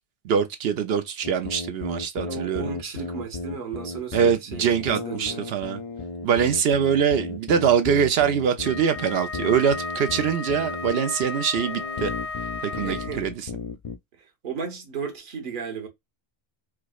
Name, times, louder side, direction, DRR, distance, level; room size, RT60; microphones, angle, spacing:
voice 1, 0.2-2.7 4.1-5.8 6.2-12.1 12.6-13.3, right 7 dB, 70° right, 0.8 m, -23 dB
sound 1, 1.2-14.0, left 4 dB, 45° left, 0.5 m, -34 dB
voice 2, 2.3-5.4 12.8-13.3 14.2-15.9, right 6 dB, 55° right, 1.1 m, -35 dB
Wind instrument woodwind instrument, 8.6-13.3, left 4 dB, 20° right, 0.7 m, -34 dB
4.7 x 2.0 x 2.3 m
omnidirectional pair, 1.1 m